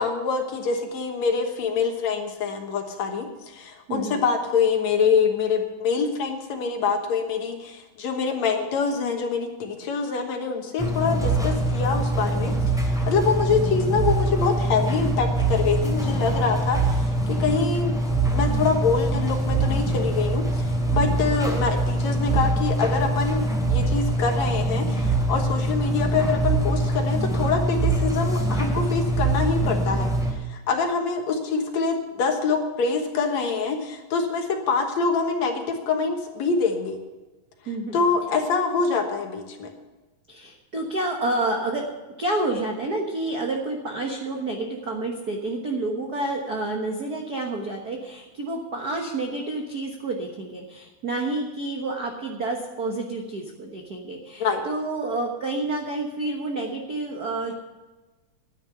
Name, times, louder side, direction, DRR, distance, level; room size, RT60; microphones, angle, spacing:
voice 1, 0.0-12.5 12.9-18.0 18.3-30.1 30.5-37.0 37.9-39.7 54.4-54.6, left 5 dB, 60° left, 4 dB, 2.2 m, -25 dB
voice 2, 3.9-4.2 37.7-38.0 40.3-41.9 42.2-57.5, right 2 dB, 85° right, 1 dB, 0.8 m, -29 dB
sound 1, 10.8-30.3, right 2 dB, ahead, 2.3 m, -24 dB
11.5 x 9.7 x 6.9 m, 1.2 s
omnidirectional pair, 3.9 m